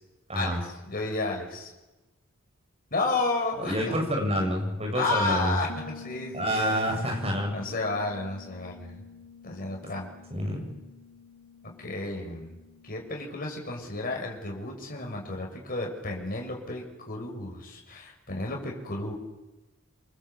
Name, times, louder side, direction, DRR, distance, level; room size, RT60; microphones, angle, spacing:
voice 1, 0.3-1.7 2.9-4.1 4.9-7.0 7.5-9.0 9.4-10.1 11.6-12.6 12.8-19.1, left 2 dB, 45° left, 0 dB, 6.5 m, -32 dB
voice 2, 3.6-5.6 6.3-7.6 10.3-10.7, equal, 30° right, 2 dB, 7.2 m, -28 dB
Bass guitar, 5.7-15.4, left 6 dB, 65° left, 3.8 m, -49 dB
28.0 x 24.0 x 8.2 m, 1.1 s
head